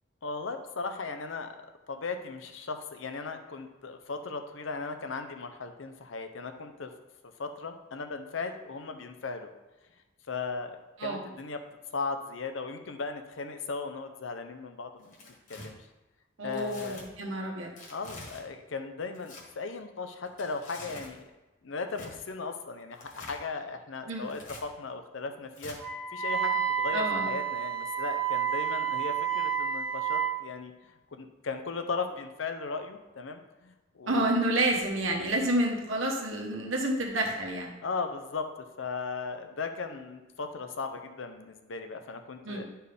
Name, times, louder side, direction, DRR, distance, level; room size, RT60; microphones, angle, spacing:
voice 1, 0.2-1.5 1.9-6.9 7.4-9.5 10.3-10.8 11.0-11.6 11.9-15.1 15.5-15.8 16.4-17.0 17.9-21.2 21.6-25.8 26.1-30.7 31.1-34.3 37.8-38.5 38.8-42.6, left 4 dB, 80° left, 7 dB, 0.7 m, -37 dB
Tearing, 15.0-15.7 16.5-17.0 17.8-18.4 19.1-19.4 20.3-21.1 21.9-22.1 22.9-23.4 24.2-24.6 25.5-25.8, left 2 dB, 45° left, 1.7 m, -46 dB
voice 2, 16.4-17.7 24.1-24.3 26.9-27.3 34.1-37.7 42.4-42.6, right 1 dB, 85° right, 0 dB, 1.3 m, -29 dB
Wind instrument woodwind instrument, 25.8-30.3, right 8 dB, 5° left, 1.1 m, -30 dB
10.5 x 4.5 x 3.5 m, 1.1 s
head